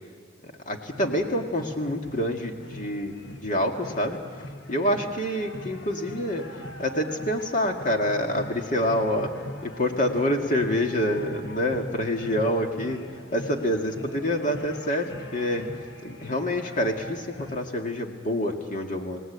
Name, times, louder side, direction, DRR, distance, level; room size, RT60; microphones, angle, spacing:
voice 1, 0.7-3.2 3.4-4.2 4.7-6.4 6.8-9.3 9.6-13.0 13.3-15.6 16.0-19.2, left 1 dB, 40° left, 2 dB, 2.1 m, -27 dB
sound 1, 0.9-17.6, left 1 dB, 65° left, 1.5 m, -41 dB
28.5 x 18.5 x 8.3 m, 2.1 s
head